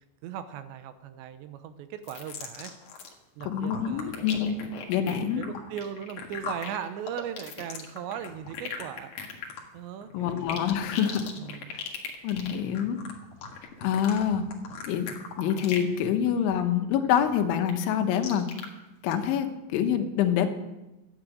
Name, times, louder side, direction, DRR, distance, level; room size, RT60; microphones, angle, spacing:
voice 1, 0.0-2.7 3.4-4.3 4.9-9.4 9.7-10.6 11.4-12.0, right 9 dB, 80° right, 11 dB, 2.9 m, -39 dB
sound 1, 2.0-3.1 3.4-16.0 16.3-16.6 17.0-18.7 19.1-19.2, left 6 dB, 55° left, 2.5 m, -39 dB
voice 2, 3.4-4.6 4.9-5.4 10.1-11.3 12.2-13.0 13.8-14.4 14.8-15.1 15.4-18.5 19.0-20.5, left 9 dB, 90° left, 6 dB, 3.5 m, -26 dB
12.5 x 8.9 x 9.0 m, 1.0 s
omnidirectional pair, 5.3 m